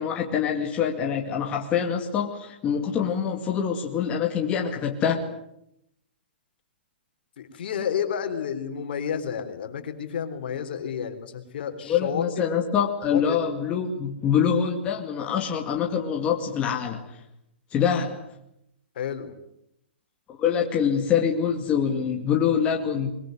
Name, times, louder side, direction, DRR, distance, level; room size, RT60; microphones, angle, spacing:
voice 1, 0.0-5.3 11.9-17.0 17.7-18.2 20.3-23.1, left 7 dB, 20° left, 1 dB, 2.3 m, -25 dB
voice 2, 7.4-12.4 13.1-13.4 19.0-19.3, left 8 dB, 60° left, 7 dB, 3.9 m, -31 dB
23.5 x 22.0 x 9.4 m, 0.79 s
hypercardioid pair, 155°, 6 cm